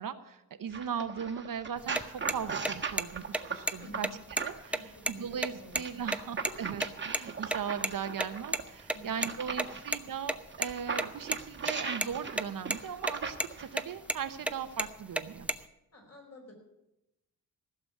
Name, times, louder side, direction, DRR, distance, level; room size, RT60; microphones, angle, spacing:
voice 1, 0.0-4.1 4.4-15.5, right 7 dB, 60° right, 9 dB, 0.9 m, -38 dB
sound 1, 0.7-4.8 5.7-9.9 10.5-13.9 14.7-14.9, right 5 dB, 30° right, 1.4 m, -38 dB
sound 2, 1.8-6.9 7.1-7.2 7.5-7.6 7.8-7.9 8.2-8.3 8.5-8.6 8.9-10.0 10.2-10.7 11.0-11.7 12.0-12.4 12.7-13.1 13.4-13.5 13.8-14.2 14.5-15.6, right 1 dB, 5° right, 0.5 m, -31 dB
voice 2, 3.7-4.2 4.7-5.2 5.6-6.1 8.9-9.5 15.9-16.5, equal, 40° left, 1 dB, 4.6 m, -51 dB
15.5 x 7.0 x 9.3 m, 0.90 s
wide cardioid pair, 130°, 38 cm